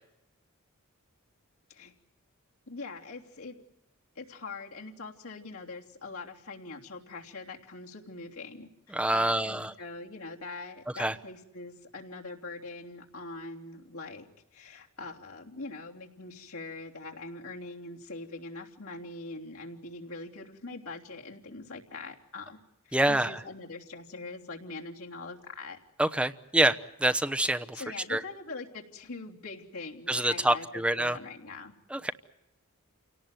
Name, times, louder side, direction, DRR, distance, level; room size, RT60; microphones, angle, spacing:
voice 1, 2.7-3.5 4.1-14.3 14.5-22.6 22.8-25.8 26.6-26.7 27.7-31.7, left 3 dB, 80° left, 0 dB, 3.3 m, -43 dB
voice 2, 8.9-9.7 10.9-11.2 22.9-23.4 26.0-27.8 28.1-28.2 30.1-31.2 31.9-32.1, right 1 dB, 5° right, 8 dB, 0.9 m, -26 dB
28.5 x 18.0 x 9.2 m, 0.89 s
head